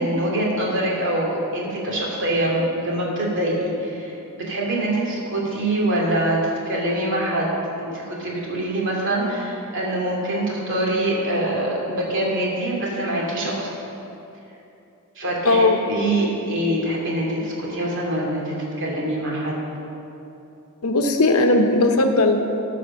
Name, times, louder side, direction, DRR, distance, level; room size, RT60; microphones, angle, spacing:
voice 1, 0.0-6.4 6.7-7.5 7.8-13.8 15.1-19.6, right 1 dB, 60° right, -3 dB, 2.6 m, -24 dB
voice 2, 15.4-15.8 20.8-22.5, left 2 dB, 70° left, 5 dB, 0.9 m, -18 dB
14.0 x 5.0 x 6.5 m, 2.8 s
head